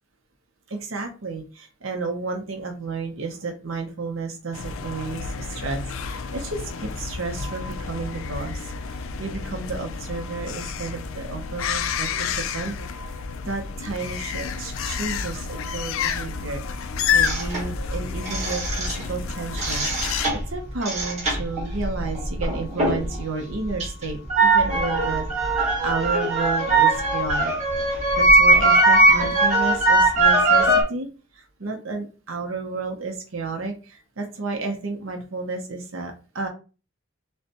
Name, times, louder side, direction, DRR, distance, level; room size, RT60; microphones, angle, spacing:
voice 1, 0.7-13.0 13.4-27.5 27.9-31.1 31.3-36.5, right 4 dB, 75° right, 3 dB, 0.8 m, -32 dB
sound 1, 4.5-20.3, left 6 dB, 75° left, 0.4 m, -30 dB
sound 2, 17.2-19.2 19.5-23.2 23.5-30.8, right 2 dB, 35° right, 1.6 m, -20 dB
6.3 x 2.2 x 2.9 m, 0.34 s
head